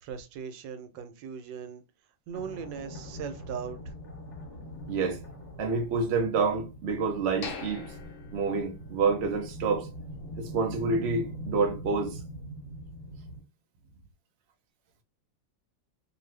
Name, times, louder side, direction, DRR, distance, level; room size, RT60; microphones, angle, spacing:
voice 1, 0.0-1.8 2.3-3.8, right 7 dB, 90° right, 1.3 m, -39 dB
sound 1, 2.3-13.4, equal, 50° left, 1.0 m, -42 dB
voice 2, 4.9-5.2 5.6-7.9 8.3-9.9 10.4-12.2, right 4 dB, 55° right, 0.7 m, -28 dB
sound 2, 7.4-9.4 9.7-9.8 10.3-10.5, left 5 dB, 75° left, 0.7 m, -42 dB
2.6 x 2.5 x 3.1 m
omnidirectional pair, 1.9 m